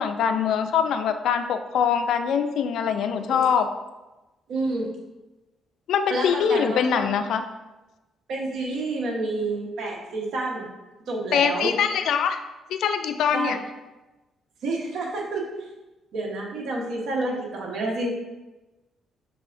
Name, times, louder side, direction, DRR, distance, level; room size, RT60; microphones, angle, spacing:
voice 1, 0.0-3.7 5.9-7.4 11.3-12.4 12.7-13.6, left 7 dB, 75° left, 8 dB, 0.4 m, -23 dB
voice 2, 4.5-4.9 6.1-7.0 8.3-10.7 11.1-11.7 13.3-13.6 14.6-15.6 16.1-18.1, right 2 dB, 70° right, -1 dB, 1.0 m, -29 dB
6.2 x 3.4 x 2.5 m, 1.1 s
cardioid pair, 90°, 0 cm